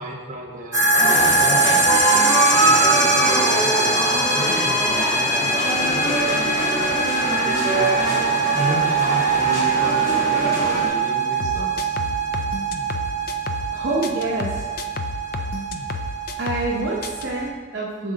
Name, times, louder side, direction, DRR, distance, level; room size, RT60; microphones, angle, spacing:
voice 1, 0.0-2.0 2.6-6.3 7.2-11.9, equal, 40° right, -2 dB, 1.0 m, -32 dB
sound 1, 0.7-17.5, right 3 dB, 15° right, 0.8 m, -22 dB
sound 2, 0.9-10.9, right 1 dB, 15° left, 1.6 m, -23 dB
sound 3, 11.4-13.7 14.0-16.7 17.0-17.3, left 4 dB, 45° left, 0.3 m, -31 dB
voice 2, 13.7-14.7 16.4-18.1, right 2 dB, 60° right, -4 dB, 0.7 m, -26 dB
6.6 x 3.7 x 3.8 m, 1.3 s
head